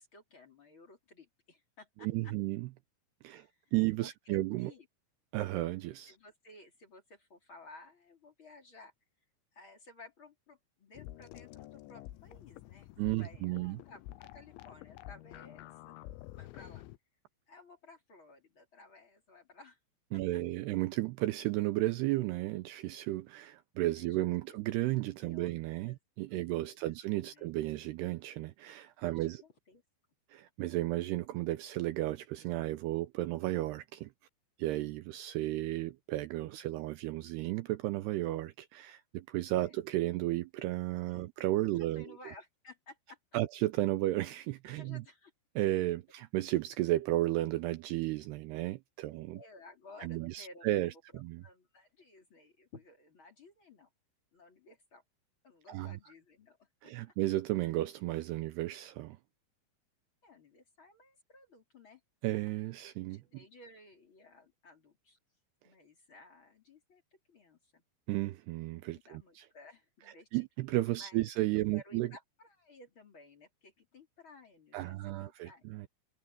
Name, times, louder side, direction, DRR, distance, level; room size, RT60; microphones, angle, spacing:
voice 1, 0.0-2.3 3.2-3.7 4.0-4.9 6.1-8.9 9.5-16.0 16.3-16.8 17.5-19.8 23.9-24.6 25.2-25.5 25.9-26.0 26.3-26.5 26.8-27.5 29.0-29.8 39.6-39.8 41.1-41.3 41.7-43.4 44.7-45.3 49.3-50.9 51.1-53.9 54.3-55.0 55.4-57.2 60.2-62.0 63.1-65.2 65.6-67.8 68.9-70.4 71.0-71.3 71.7-75.6, left 3 dB, 30° left, 3.1 m, -56 dB
voice 2, 2.0-2.7 3.2-3.5 3.7-4.7 5.3-6.2 13.0-13.8 20.1-29.4 30.3-34.1 34.6-42.2 43.3-45.0 45.6-49.4 50.0-51.4 55.7-56.0 56.8-59.2 62.2-63.2 68.1-69.4 70.3-72.1 74.7-75.9, right 17 dB, 90° right, 2.4 m, -33 dB
sound 1, 10.9-17.0, left 16 dB, 80° left, 3.1 m, -49 dB
omnidirectional pair, 5.4 m